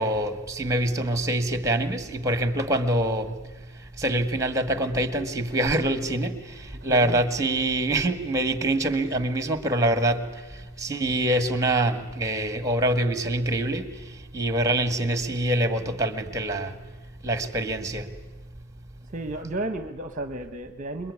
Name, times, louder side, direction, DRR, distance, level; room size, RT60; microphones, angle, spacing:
voice 1, 0.0-3.3 4.0-10.2 10.5-16.7 17.2-18.1, right 1 dB, 15° right, 10 dB, 1.7 m, -25 dB
voice 2, 6.9-7.2 19.1-21.1, right 2 dB, 35° right, 8 dB, 0.9 m, -33 dB
27.0 x 21.5 x 9.6 m, 1.2 s
head